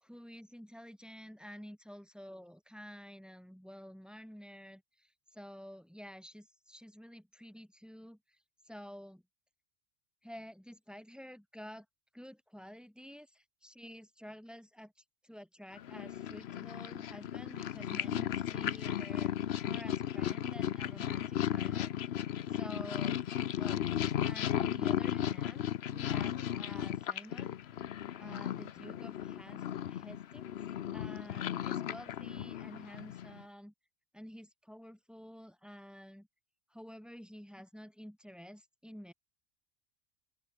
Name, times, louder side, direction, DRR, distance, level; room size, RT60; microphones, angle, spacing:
voice 1, 0.0-8.4 8.6-9.2 10.2-11.9 12.1-14.9 15.2-19.3 19.6-22.0 22.5-23.2 23.5-23.9 24.2-27.5 28.2-30.6 30.9-33.7 34.1-36.3 36.7-39.1, equal, ahead, 4.0 m, -50 dB
Purr, 15.8-33.4, left 10 dB, 65° left, 0.9 m, -35 dB
open air
omnidirectional pair, 1.2 m